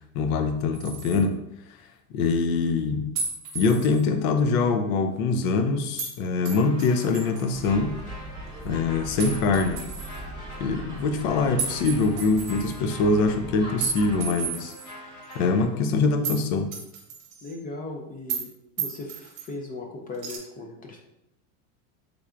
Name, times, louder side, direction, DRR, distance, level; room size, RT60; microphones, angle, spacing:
voice 1, 0.1-1.4 2.1-3.1 3.5-8.0 8.6-9.9 10.6-14.7 15.3-16.7, left 4 dB, 70° left, 6 dB, 0.6 m, -24 dB
sound 1, 0.7-1.2 3.1-4.0 6.0-6.1 6.4-7.7 9.2-10.2 11.6-12.8 13.8-14.9 15.3-15.4 16.2-16.4 16.7-17.6 18.3-18.5 18.8-19.5 20.2-20.4, right 5 dB, 55° right, 0.9 m, -33 dB
sound 2, 6.5-15.7, equal, 40° left, 1.2 m, -45 dB
sound 3, 7.5-14.3, right 1 dB, 10° right, 1.0 m, -40 dB
voice 2, 17.4-18.5 18.8-21.0, left 2 dB, 20° left, 2 dB, 0.4 m, -37 dB
3.5 x 3.2 x 2.4 m, 0.84 s
supercardioid pair, 110°, 44 cm